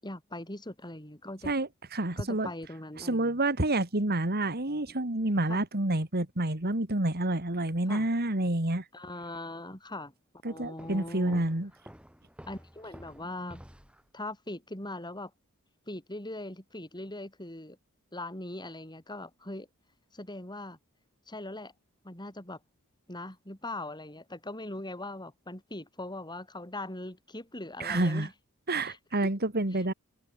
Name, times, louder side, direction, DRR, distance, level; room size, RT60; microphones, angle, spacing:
voice 1, 0.0-1.5 2.2-3.4 4.9-5.0 5.5-5.6 7.9-8.1 8.9-10.1 10.4-11.4 12.5-13.7 14.1-15.3 15.9-17.8 18.1-19.7 20.1-20.8 21.3-21.7 22.0-22.6 23.1-28.3 28.8-29.0 29.7-29.9, left 2 dB, 20° left, 6.5 m, -41 dB
voice 2, 1.4-2.5 3.0-8.8 10.4-11.7 27.8-28.3 28.7-29.9, right 1 dB, 45° right, 2.8 m, -28 dB
Walk footsteps, 10.8-14.1, equal, 5° right, 4.0 m, -52 dB
head